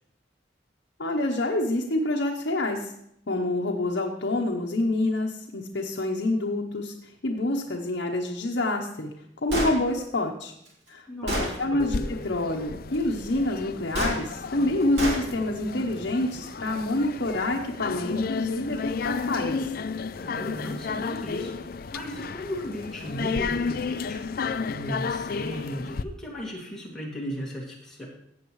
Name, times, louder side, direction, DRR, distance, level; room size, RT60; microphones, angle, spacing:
voice 1, 1.0-2.9 3.3-9.1 9.4-10.5 10.9-19.6, left 2 dB, 70° left, 0 dB, 0.9 m, -27 dB
Gunshot gunfire, 9.5-9.8 10.7-10.8 11.3-11.5 13.9-14.2 15.0-15.2, equal, 65° right, 2.9 m, -26 dB
voice 2, 11.1-12.1 20.2-28.1, equal, 5° left, -5 dB, 2.3 m, -36 dB
sound 1, 11.8-26.0, left 5 dB, 50° left, 0.4 m, -33 dB
16.0 x 8.0 x 3.1 m, 0.76 s
head